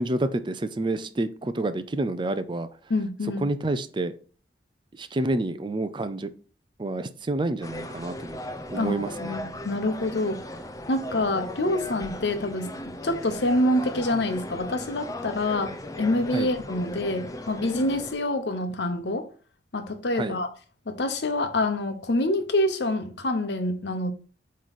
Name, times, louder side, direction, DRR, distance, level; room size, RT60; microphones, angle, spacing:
voice 1, 0.0-2.7 3.4-4.1 5.0-6.3 6.8-8.4 8.7-9.4 16.3-16.5 20.1-20.4, right 2 dB, 25° right, 0.4 m, -28 dB
voice 2, 2.9-3.5 8.7-10.4 10.9-19.3 19.7-20.5 20.9-24.1, left 1 dB, 80° left, 0.9 m, -26 dB
sound 1, 7.6-18.1, left 1 dB, 20° left, 0.5 m, -37 dB
7.9 x 3.2 x 4.1 m
head